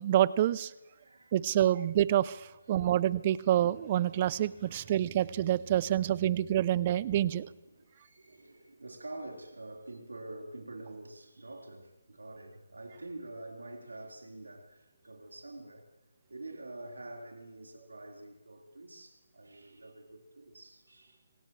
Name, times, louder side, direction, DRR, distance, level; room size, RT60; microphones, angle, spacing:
voice 1, 0.0-0.7 1.3-7.5, right 12 dB, 30° right, 0.5 m, -27 dB
voice 2, 0.9-1.7 2.4-3.1 4.6-5.0 5.9-6.2 6.4-6.5 7.6-15.9 16.3-21.3, right 2 dB, 85° right, 4.2 m, -47 dB
26.5 x 16.5 x 3.2 m
figure-of-eight pair, 155°, 0 cm